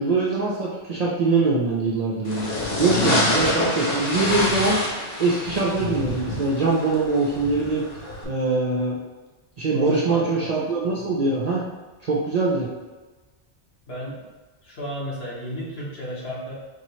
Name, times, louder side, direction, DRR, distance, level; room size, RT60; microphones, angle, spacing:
voice 1, 0.0-4.8 5.2-7.8 8.2-9.0 9.6-11.6 12.0-12.7, right 3 dB, 50° right, -5 dB, 0.5 m, -23 dB
sound 1, 2.2-8.2, left 1 dB, 40° left, 0.9 m, -26 dB
voice 2, 9.7-10.6 13.9-14.2 14.6-16.5, equal, 60° left, -6 dB, 1.4 m, -33 dB
4.6 x 2.8 x 3.0 m, 1.3 s
omnidirectional pair, 1.1 m